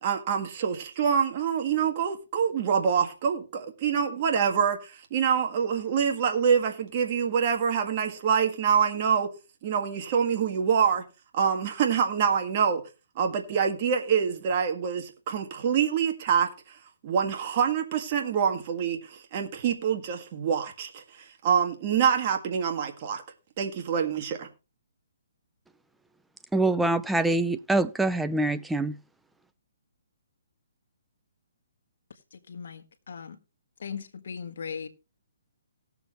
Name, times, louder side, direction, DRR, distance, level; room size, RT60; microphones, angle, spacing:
voice 1, 0.0-9.3 9.6-11.0 11.3-12.8 13.1-16.5 17.0-21.0 21.4-23.2 23.6-24.5, right 7 dB, 40° right, 1.8 m, -26 dB
voice 2, 26.5-29.0, right 2 dB, 5° right, 0.5 m, -25 dB
voice 3, 32.3-33.4 33.8-34.9, left 6 dB, 65° left, 1.4 m, -38 dB
18.0 x 7.0 x 3.0 m
hypercardioid pair, 150°, 0 cm